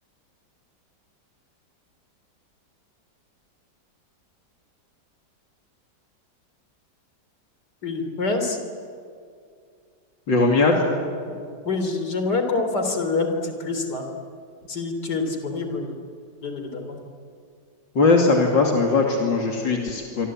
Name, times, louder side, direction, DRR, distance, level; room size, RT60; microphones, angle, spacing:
voice 1, 7.8-8.6 11.3-14.1 14.7-16.0 16.4-17.0, left 3 dB, 65° left, 5 dB, 4.1 m, -26 dB
voice 2, 10.3-10.8 17.9-20.3, left 3 dB, 80° left, 1 dB, 3.3 m, -19 dB
26.5 x 25.5 x 8.9 m, 2.3 s
omnidirectional pair, 2.0 m